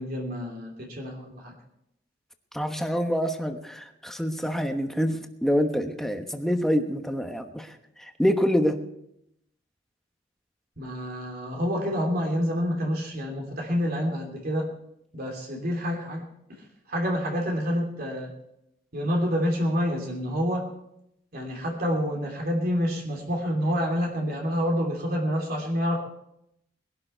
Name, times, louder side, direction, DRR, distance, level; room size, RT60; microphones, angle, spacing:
voice 1, 0.0-1.5 10.8-14.7 15.1-18.3 18.9-20.7 21.3-26.0, equal, 55° right, 0 dB, 3.0 m, -28 dB
voice 2, 2.5-8.8, equal, ahead, 5 dB, 1.2 m, -26 dB
21.0 x 11.5 x 4.5 m, 0.79 s
head